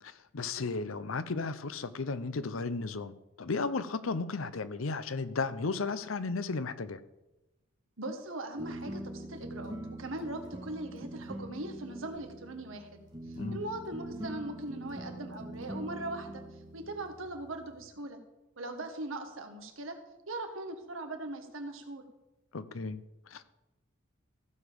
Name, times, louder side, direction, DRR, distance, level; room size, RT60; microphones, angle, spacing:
voice 1, 0.0-7.0 13.4-13.6 22.5-23.4, left 4 dB, 85° left, 14 dB, 0.7 m, -34 dB
voice 2, 8.0-16.4 16.7-18.2 18.6-19.9 20.3-22.0, right 2 dB, 80° right, 6 dB, 1.6 m, -40 dB
sound 1, 8.6-17.8, right 1 dB, 20° right, 1.8 m, -43 dB
15.0 x 5.1 x 6.9 m, 0.98 s
head